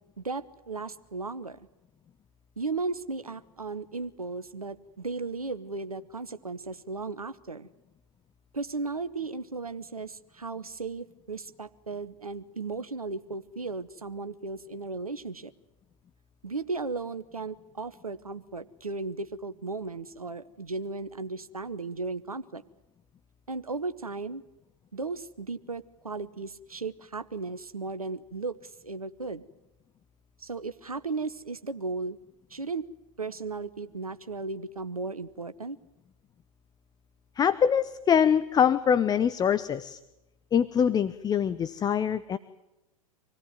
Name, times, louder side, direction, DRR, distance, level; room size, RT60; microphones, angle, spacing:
voice 1, 0.2-1.6 2.6-7.7 8.5-15.5 16.4-22.6 23.5-24.4 24.9-29.4 30.4-32.2 32.5-32.8 33.2-35.8, right 3 dB, 90° right, 12 dB, 0.9 m, -35 dB
voice 2, 37.4-40.0 40.5-42.4, left 8 dB, 20° left, 13 dB, 0.9 m, -24 dB
26.0 x 18.5 x 9.4 m, 0.94 s
figure-of-eight pair, 95°, 18 cm